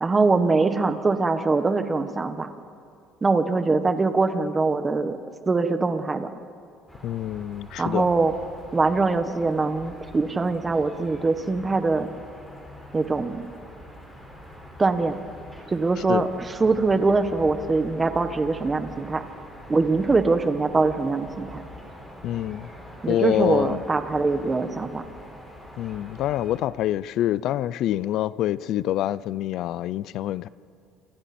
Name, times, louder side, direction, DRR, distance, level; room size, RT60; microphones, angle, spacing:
voice 1, 0.0-2.5 3.2-5.2 5.5-6.3 7.8-8.3 8.7-12.1 12.9-13.5 14.8-15.2 15.7-19.2 19.7-21.6 23.0-25.0, right 3 dB, 20° right, 1.3 m, -23 dB
sound 1, 6.9-26.6, equal, 5° left, 5.1 m, -44 dB
voice 2, 7.0-8.1 16.1-16.2 22.2-22.7 23.1-23.8 25.8-30.5, left 13 dB, 60° left, 0.5 m, -26 dB
27.5 x 26.0 x 4.4 m
cardioid pair, 135°, 0 cm